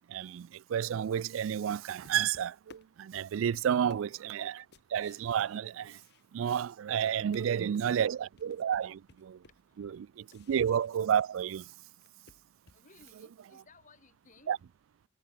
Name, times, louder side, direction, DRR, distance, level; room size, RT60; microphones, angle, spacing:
voice 1, 0.1-4.6 4.9-6.0 6.3-9.4 9.8-10.1 10.5-11.7 14.5-14.6, right 8 dB, 80° right, 0.3 m, -31 dB
sound 1, 1.4-6.7 7.0-11.6 11.9-13.3, left 3 dB, 55° left, 2.0 m, -59 dB
voice 2, 3.6-4.0 7.7-8.2 12.7-14.6, left 3 dB, 40° left, 3.9 m, -61 dB
head